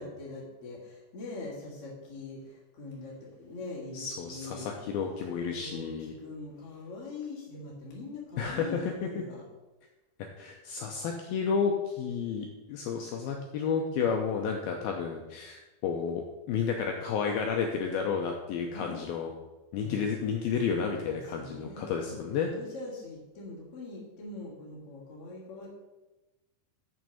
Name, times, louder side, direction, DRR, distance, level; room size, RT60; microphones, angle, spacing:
voice 1, 0.0-4.7 5.5-9.4 18.7-19.0 19.8-20.1 21.1-25.7, left 3 dB, 45° left, -5 dB, 2.3 m, -42 dB
voice 2, 3.9-6.2 8.4-9.2 10.4-19.3 19.7-22.5, left 6 dB, 85° left, 2 dB, 2.2 m, -31 dB
7.2 x 6.2 x 7.1 m, 1.1 s
omnidirectional pair, 5.1 m